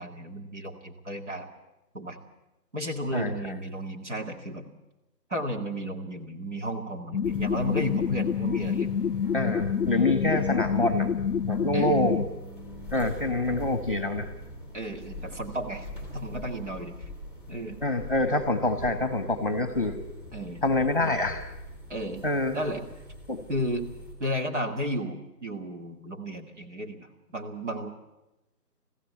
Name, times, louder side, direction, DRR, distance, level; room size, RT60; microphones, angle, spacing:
voice 1, 0.0-1.5 1.9-2.2 2.7-4.6 5.3-8.9 11.7-12.0 14.7-16.9 17.5-17.8 20.3-20.6 21.9-22.2 22.5-22.8 23.5-23.9 24.2-27.9, equal, 45° right, 3 dB, 2.2 m, -33 dB
sound 1, 7.1-12.2, left 7 dB, 75° left, 0.7 m, -27 dB
sound 2, 7.2-24.1, equal, 15° right, 3.3 m, -42 dB
voice 2, 9.3-11.1 11.5-12.3 12.9-14.3 17.8-20.0 20.6-21.5 22.2-22.6 23.3-23.5, left 2 dB, 30° left, 10 dB, 1.2 m, -26 dB
20.5 x 15.5 x 8.3 m, 0.99 s
figure-of-eight pair, 175°, 49 cm